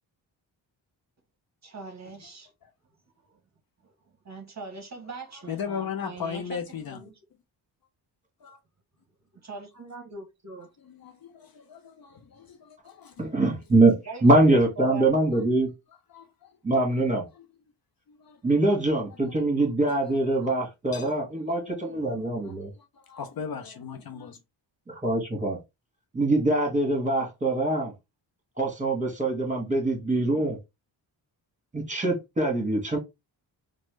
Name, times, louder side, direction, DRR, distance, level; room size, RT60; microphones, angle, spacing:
voice 1, 1.6-2.5 4.2-6.6 6.9-7.1 9.5-10.7 14.1-14.2 14.5-15.3, right 2 dB, 35° right, 0.8 m, -41 dB
voice 2, 5.3-7.1 8.4-8.6 10.9-13.4 16.1-17.0 17.3-17.5 18.1-18.4 19.4-19.5 20.1-20.5 20.9-21.1 21.6-22.1 22.4-22.5 22.9-24.4, left 7 dB, 50° left, 0.6 m, -38 dB
voice 3, 13.2-13.9 14.2-15.7 16.6-17.3 18.4-22.7 24.9-25.6 26.1-27.9 28.6-30.6 31.7-33.0, right 2 dB, 15° right, 1.5 m, -23 dB
3.1 x 2.1 x 3.1 m
cardioid pair, 65°, 47 cm